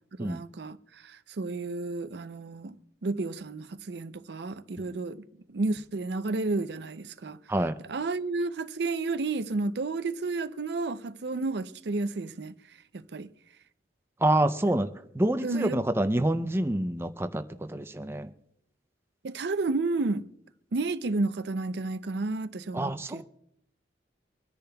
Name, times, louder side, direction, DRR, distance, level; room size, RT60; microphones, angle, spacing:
voice 1, 0.2-2.8 3.0-7.4 7.9-12.5 12.9-13.3 14.7-14.8 15.4-15.8 19.2-20.3 20.7-23.2, right 3 dB, 60° right, 0.5 m, -31 dB
voice 2, 14.2-14.9 15.1-18.3 22.7-23.2, right 1 dB, 15° right, 0.5 m, -27 dB
25.0 x 10.0 x 2.3 m
head